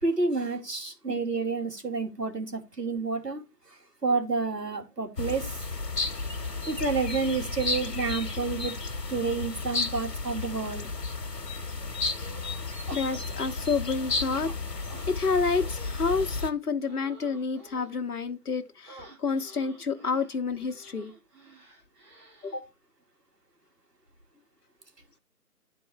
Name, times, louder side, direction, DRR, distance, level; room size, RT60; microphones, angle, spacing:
voice 1, 0.0-3.4 4.0-5.6 6.7-8.8 9.1-10.9, right 4 dB, 85° right, 2.9 m, -29 dB
voice 2, 1.1-1.4 12.9-14.8 15.1-21.1 22.4-22.6, left 4 dB, 65° left, 1.0 m, -29 dB
sound 1, 5.2-16.5, left 3 dB, 90° left, 1.3 m, -33 dB
sound 2, 12.1-12.6 12.9-14.6 14.9-18.0 18.9-22.6, right 2 dB, 15° right, 6.2 m, -50 dB
10.5 x 4.6 x 4.5 m
figure-of-eight pair, 170°, 47 cm